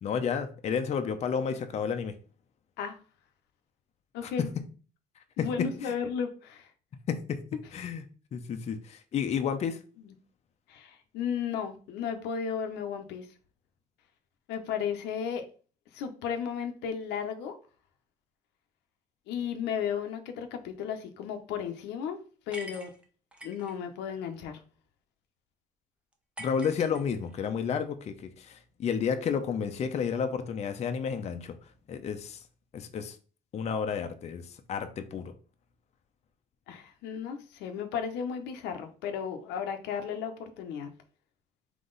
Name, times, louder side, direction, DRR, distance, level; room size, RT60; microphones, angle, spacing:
voice 1, 0.0-2.1 4.2-4.3 5.8-5.9 7.1-7.4 7.7-8.0 8.3-9.8 26.4-31.5 31.9-32.4 32.7-33.2 33.5-34.4 34.7-35.3, left 6 dB, 40° left, 7 dB, 0.5 m, -31 dB
voice 2, 4.1-4.5 5.4-6.7 10.0-10.1 10.7-13.3 14.5-15.5 15.9-17.6 19.3-22.2 22.5-22.9 23.4-24.6 36.7-40.9, left 7 dB, 85° left, 6 dB, 0.7 m, -34 dB
sound 1, 22.5-23.7 26.4-27.5, right 1 dB, 5° right, 0.7 m, -45 dB
3.8 x 2.9 x 3.8 m, 0.38 s
cardioid pair, 110°, 17 cm